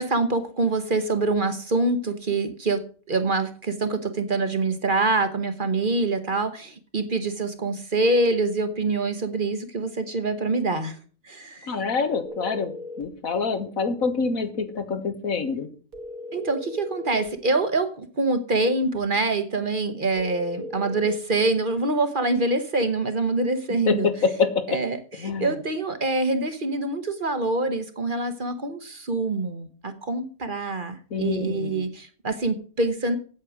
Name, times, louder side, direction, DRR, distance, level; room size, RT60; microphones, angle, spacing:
voice 1, 0.0-11.0 11.2-11.7 16.3-24.1 24.7-25.0 25.2-33.2, right 3 dB, 40° right, 9 dB, 1.1 m, -25 dB
voice 2, 11.7-12.7 13.0-15.7 23.9-24.0 24.4-24.5 25.2-25.5 31.1-31.8, left 5 dB, 75° left, 9 dB, 1.8 m, -26 dB
sound 1, 12.2-13.1 15.9-17.3 20.2-21.2, left 2 dB, 90° right, 2.1 m, -37 dB
8.6 x 8.6 x 6.1 m, 0.40 s
omnidirectional pair, 1.5 m